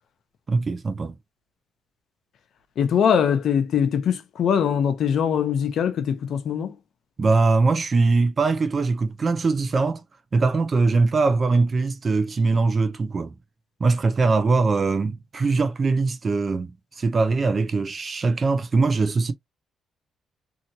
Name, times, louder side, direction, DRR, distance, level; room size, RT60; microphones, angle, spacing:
voice 1, 0.5-1.1 7.2-10.0 10.3-13.3 13.8-19.3, right 3 dB, 35° right, 0.6 m, -21 dB
voice 2, 2.8-6.8, left 8 dB, 65° left, 0.8 m, -22 dB
2.8 x 2.7 x 2.7 m
cardioid pair, 90°, 0 cm